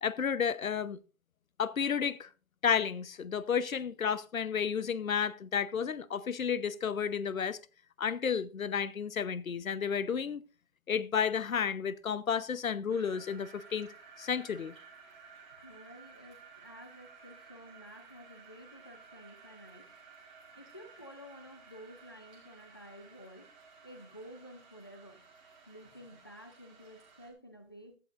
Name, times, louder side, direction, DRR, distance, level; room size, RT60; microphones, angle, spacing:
voice 1, 0.0-1.0 1.6-2.3 2.6-7.6 8.0-10.4 10.9-13.9 14.2-14.7, left 7 dB, 85° left, 1.0 m, -32 dB
sound 1, 12.9-27.3, right 5 dB, 5° right, 1.1 m, -55 dB
voice 2, 15.6-19.9 20.6-23.5 23.8-25.2 25.7-28.0, equal, 15° left, 0.7 m, -52 dB
15.5 x 12.0 x 2.5 m
hypercardioid pair, 175°, 40 cm